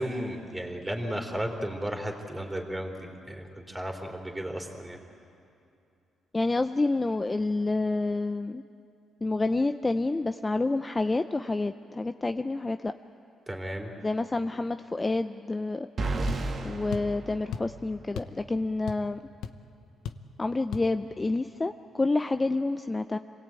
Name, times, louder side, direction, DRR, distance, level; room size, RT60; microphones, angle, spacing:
voice 1, 0.0-5.0 13.5-13.9, equal, 10° right, 2 dB, 3.4 m, -34 dB
voice 2, 6.3-8.6 9.2-12.9 14.0-15.9 16.6-19.2 20.4-23.2, left 2 dB, 20° left, 9 dB, 0.5 m, -28 dB
sound 1, 16.0-18.1, right 2 dB, 50° right, 1.9 m, -32 dB
sound 2, 16.3-16.5 16.9-17.2 17.5-17.7 18.2-18.4 18.7-19.2 19.4-19.6 20.0-20.3 20.7-20.9, left 8 dB, 80° left, 0.9 m, -36 dB
26.5 x 18.0 x 8.9 m, 2.7 s
cardioid pair, 90°, 0 cm